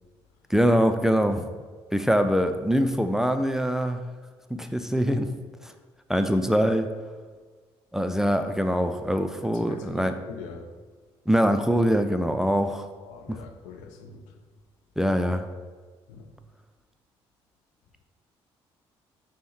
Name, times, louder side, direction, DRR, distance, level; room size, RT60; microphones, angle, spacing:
voice 1, 0.5-1.5 1.9-4.0 4.5-5.3 5.6-5.7 6.1-6.9 7.9-10.1 11.3-12.9 13.3-13.4 15.0-15.5, equal, 5° right, 0.3 m, -23 dB
voice 2, 9.4-10.7 13.0-14.3 16.1-16.3, left 5 dB, 75° left, 0.5 m, -43 dB
5.2 x 2.1 x 4.4 m
hypercardioid pair, 50°, 13 cm